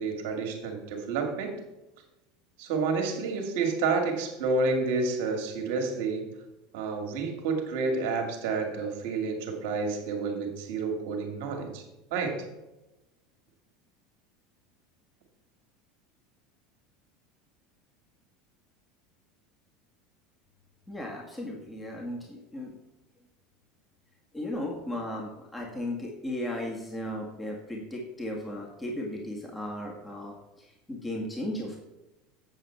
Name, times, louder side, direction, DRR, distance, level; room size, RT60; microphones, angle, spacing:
voice 1, 0.0-1.5 2.6-6.2 6.7-11.8 12.1-12.4, right 4 dB, 65° right, 3 dB, 2.0 m, -29 dB
voice 2, 20.9-22.7 24.3-31.8, left 1 dB, 10° left, -2 dB, 1.9 m, -36 dB
7.7 x 7.5 x 4.5 m, 0.99 s
hypercardioid pair, 80°, 0 cm